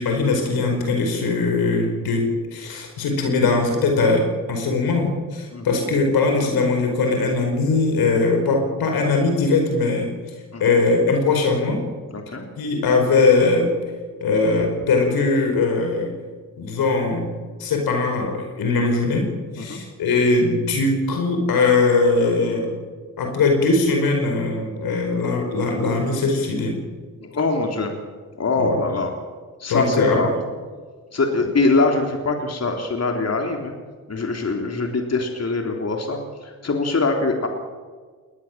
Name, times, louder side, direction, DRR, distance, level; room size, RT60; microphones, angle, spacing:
voice 1, 0.0-10.1 10.6-11.8 12.6-13.7 14.2-16.1 16.6-17.3 17.6-22.8 23.2-26.8 28.6-28.8 29.7-30.2, left 3 dB, 80° left, 4 dB, 5.0 m, -20 dB
voice 2, 12.1-12.5 19.6-19.8 27.2-27.9 28.4-29.1 29.6-30.3 31.1-33.7 34.1-37.5, left 3 dB, 45° left, 3 dB, 3.5 m, -23 dB
20.0 x 20.0 x 7.5 m, 1.5 s
supercardioid pair, 50°, 36 cm